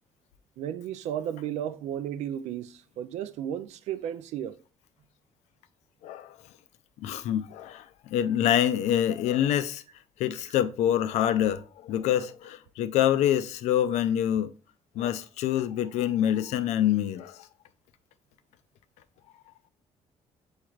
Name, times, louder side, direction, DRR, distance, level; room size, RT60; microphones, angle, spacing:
voice 1, 0.6-4.6, right 10 dB, 85° right, 0.4 m, -34 dB
voice 2, 6.0-6.4 7.0-9.8 10.2-14.5 15.0-17.5, left 11 dB, 85° left, 0.4 m, -26 dB
7.0 x 3.2 x 2.4 m
cardioid pair, 105°, 11 cm